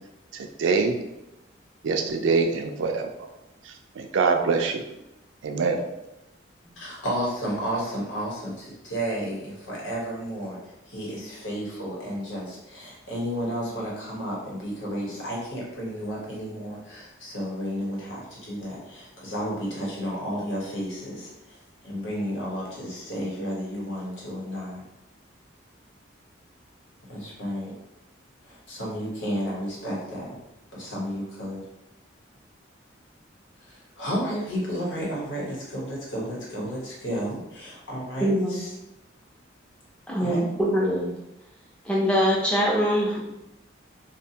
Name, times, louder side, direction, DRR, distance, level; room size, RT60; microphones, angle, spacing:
voice 1, 0.3-1.0 1.8-3.3 3.6-4.8 5.4-5.8, right 4 dB, 80° right, 4 dB, 0.3 m, -24 dB
voice 2, 6.8-10.6 10.9-21.6 21.8-24.8 27.1-27.7 28.4-30.4 30.7-31.6 33.6-38.7 40.2-40.4, equal, 80° left, -4 dB, 1.0 m, -32 dB
voice 3, 38.2-38.6 40.1-41.1 41.8-43.2, equal, 5° left, -5 dB, 0.5 m, -23 dB
2.7 x 2.1 x 2.7 m, 0.89 s
head